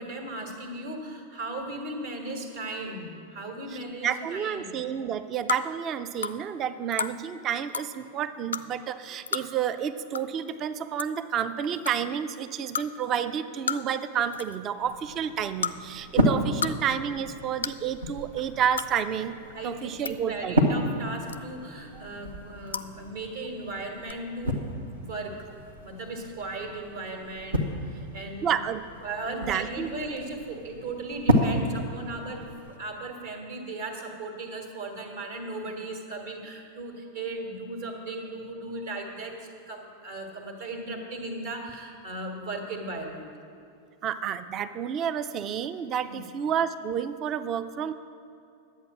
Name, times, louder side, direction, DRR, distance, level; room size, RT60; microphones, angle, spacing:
voice 1, 0.0-4.8 19.5-24.6 25.0-25.5 25.8-28.5 29.0-32.5 32.8-43.3 46.0-46.2, right 2 dB, 55° right, 2 dB, 1.7 m, -37 dB
voice 2, 4.0-19.3 19.6-20.5 21.9-22.0 28.4-28.8 29.3-29.9 44.0-47.9, right 8 dB, 30° right, 12 dB, 0.4 m, -30 dB
sound 1, 5.5-5.6 6.2-6.4 6.9-7.1 7.7-7.9 8.5-8.6 9.3-9.5 10.1-10.2 10.5-10.6 11.0-11.2 11.9-12.0 12.7-12.9 13.7-14.0 14.3-14.6 15.6-15.7 16.4-16.7 17.0-17.1 17.6-17.8 18.7-18.9 19.7-20.1 21.3-21.6 22.7-22.9 24.0-24.1, left 6 dB, 70° left, 0.3 m, -31 dB
sound 2, 14.8-32.8, equal, 75° right, 1.2 m, -32 dB
11.0 x 8.1 x 6.1 m, 2.6 s
figure-of-eight pair, 90°, 0 cm